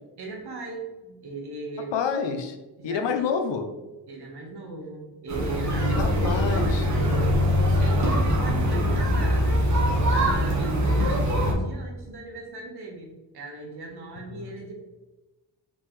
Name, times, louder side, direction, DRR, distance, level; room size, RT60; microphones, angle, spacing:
voice 1, 0.2-1.9 2.8-3.1 4.1-9.9 10.1-14.7, right 3 dB, 65° right, 1 dB, 1.8 m, -39 dB
voice 2, 1.9-2.6 2.8-3.8 6.0-6.9, left 6 dB, 85° left, 6 dB, 0.9 m, -28 dB
sound 1, 5.3-11.5, equal, 40° right, 1.8 m, -22 dB
5.3 x 5.2 x 3.4 m, 1.1 s
cardioid pair, 105°, 42 cm